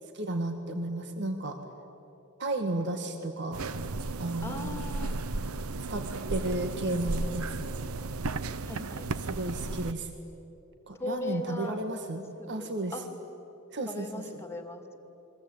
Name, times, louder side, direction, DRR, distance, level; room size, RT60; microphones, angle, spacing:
voice 1, 0.1-1.6 2.4-3.6 4.2-4.7 5.8-7.7 9.2-10.1 10.9-12.9 13.7-14.1, right 2 dB, 55° right, 6 dB, 1.8 m, -33 dB
sound 1, 3.5-9.9, right 3 dB, 80° right, 0.9 m, -34 dB
voice 2, 4.4-5.2 8.7-9.0 10.9-11.8 12.4-13.1 13.9-14.8, left 2 dB, 10° left, 5 dB, 2.4 m, -38 dB
28.5 x 23.0 x 8.9 m, 2.9 s
head